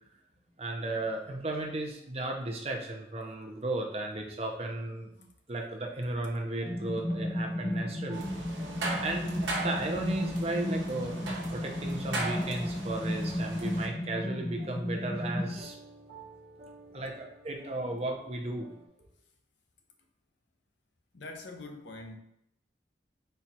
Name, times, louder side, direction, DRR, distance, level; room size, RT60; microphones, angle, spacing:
voice 1, 0.6-8.3 9.0-15.8 16.9-18.7, right 2 dB, 35° right, 0.6 m, -35 dB
sound 1, 6.6-18.9, right 2 dB, 55° right, 1.1 m, -53 dB
sound 2, 6.7-15.6, left 1 dB, 15° left, 0.4 m, -34 dB
sound 3, 8.1-13.9, right 2 dB, 85° right, 1.0 m, -38 dB
voice 2, 21.1-22.2, left 2 dB, 75° left, 0.7 m, -43 dB
4.4 x 2.4 x 4.1 m
head